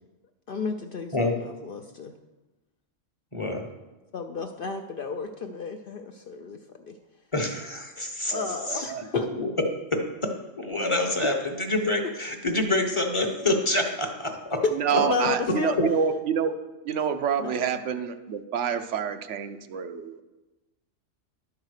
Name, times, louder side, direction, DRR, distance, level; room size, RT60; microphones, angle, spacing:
voice 1, 0.5-2.1 4.1-6.6 6.8-6.9 8.2-9.3 14.9-15.8 17.4-17.7, left 4 dB, 60° left, 5 dB, 0.6 m, -33 dB
voice 2, 3.3-3.7 7.3-8.3 8.7-8.9 9.3-9.5 9.9-14.6 14.9-15.0 15.8-15.9, left 2 dB, 30° left, 3 dB, 0.8 m, -27 dB
voice 3, 8.3-9.0 14.7-16.5 16.8-20.2, right 7 dB, 70° right, 9 dB, 0.9 m, -28 dB
11.0 x 4.8 x 6.4 m, 1.1 s
omnidirectional pair, 1.3 m